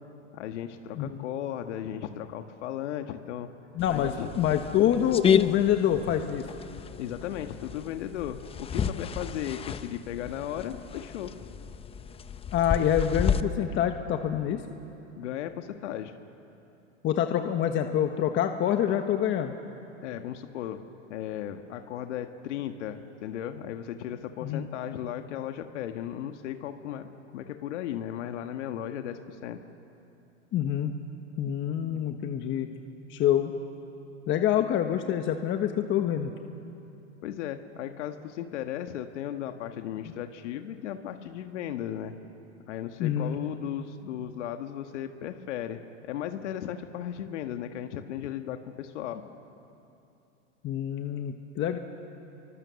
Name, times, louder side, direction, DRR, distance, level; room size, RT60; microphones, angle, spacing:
voice 1, 0.3-3.5 3.9-4.3 7.0-11.3 15.1-16.1 20.0-20.8 21.1-29.6 37.2-42.1 42.7-49.2, left 10 dB, 70° left, 6 dB, 1.6 m, -36 dB
voice 2, 0.9-1.2 3.8-6.4 12.5-14.6 17.0-19.5 24.4-24.7 30.5-30.9 31.4-32.7 33.1-33.5 34.3-36.3 43.0-43.4 50.6-51.8, left 10 dB, 30° left, 6 dB, 1.3 m, -26 dB
sound 1, 3.8-13.4, left 7 dB, 15° left, 0.7 m, -31 dB
30.0 x 24.5 x 7.1 m, 2.8 s
hypercardioid pair, 125°, 36 cm